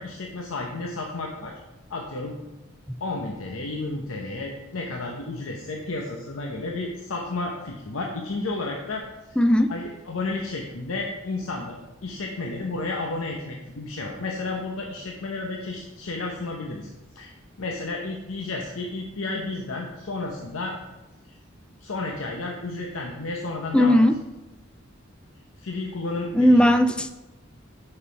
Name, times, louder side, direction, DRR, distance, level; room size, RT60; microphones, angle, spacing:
voice 1, 0.0-1.5 1.9-2.4 3.0-9.4 9.7-11.8 12.0-17.3 17.6-20.7 21.3-21.4 21.8-24.0 25.6-26.7, left 2 dB, 90° left, 1 dB, 0.8 m, -32 dB
voice 2, 9.4-9.7 23.7-24.2 26.3-27.1, equal, 5° left, 9 dB, 0.3 m, -17 dB
6.3 x 5.5 x 5.6 m, 1.0 s
head